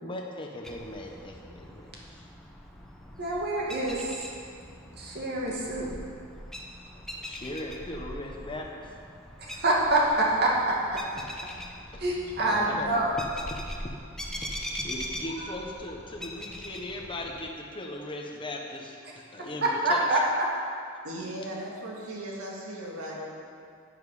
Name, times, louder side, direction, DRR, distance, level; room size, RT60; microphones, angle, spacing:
voice 1, 0.0-2.2 6.9-8.9 11.2-11.5 11.9-12.0 12.4-12.9 14.4-14.5 14.8-20.0, left 1 dB, 25° left, 0 dB, 1.0 m, -39 dB
sound 1, 0.6-17.5, equal, ahead, 0.7 m, -42 dB
voice 2, 3.2-4.3 4.9-5.9 9.4-11.0 12.0-13.2 15.4-15.5 19.6-20.5, right 1 dB, 50° right, -3 dB, 2.1 m, -26 dB
voice 3, 21.0-23.4, right 1 dB, 85° right, -3 dB, 2.1 m, -37 dB
10.5 x 8.9 x 4.9 m, 2.3 s
head